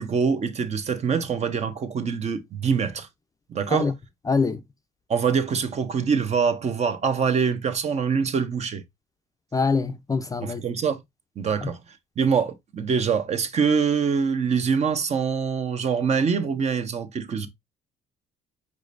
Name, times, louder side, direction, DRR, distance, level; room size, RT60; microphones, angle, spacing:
voice 1, 0.0-3.1 3.5-3.9 5.1-8.8 10.4-11.0 11.4-11.8 12.2-17.5, right 6 dB, 40° right, 0.9 m, -24 dB
voice 2, 4.3-4.6 9.5-10.6, left 4 dB, 20° left, 0.5 m, -24 dB
5.0 x 4.2 x 2.5 m
cardioid pair, 110°, 17 cm